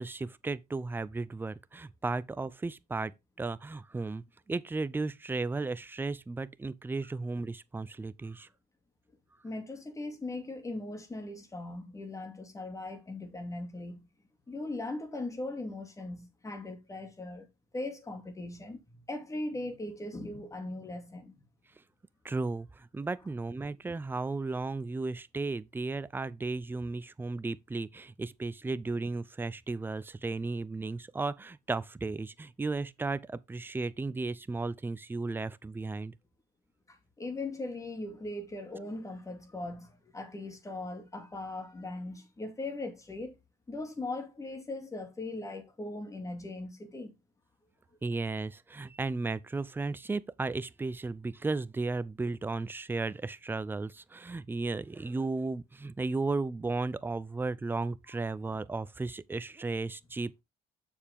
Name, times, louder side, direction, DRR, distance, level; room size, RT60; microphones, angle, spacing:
voice 1, 0.0-8.5 22.2-36.1 48.0-60.4, right 3 dB, 10° right, 0.5 m, -35 dB
voice 2, 9.4-14.1 14.5-17.5 17.7-18.8 19.1-21.5 36.9-43.4 43.7-47.1, left 2 dB, 20° left, 2.5 m, -39 dB
7.1 x 6.8 x 3.5 m
cardioid pair, 110°, 17 cm